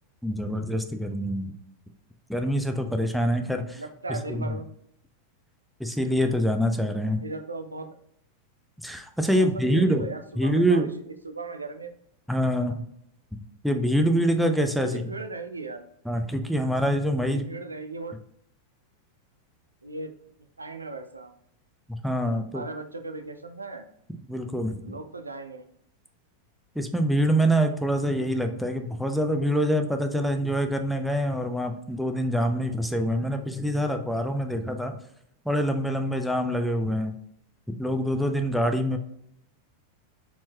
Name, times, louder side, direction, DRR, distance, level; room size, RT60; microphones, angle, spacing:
voice 1, 0.2-1.5 2.3-3.8 4.3-4.4 5.8-7.2 8.8-10.1 10.4-10.9 12.3-12.8 13.3-13.4 13.6-15.0 16.1-17.5 22.0-22.6 24.3-24.8 26.8-35.0 35.5-37.1 37.8-39.0, equal, ahead, 5 dB, 0.5 m, -25 dB
voice 2, 3.7-4.7 7.2-7.9 9.3-12.0 14.8-15.9 17.2-18.2 19.8-20.1 20.6-21.3 22.5-23.9 24.8-25.7, right 3 dB, 80° right, 6 dB, 0.5 m, -37 dB
4.5 x 4.3 x 2.2 m, 0.72 s
figure-of-eight pair, 90°, 0 cm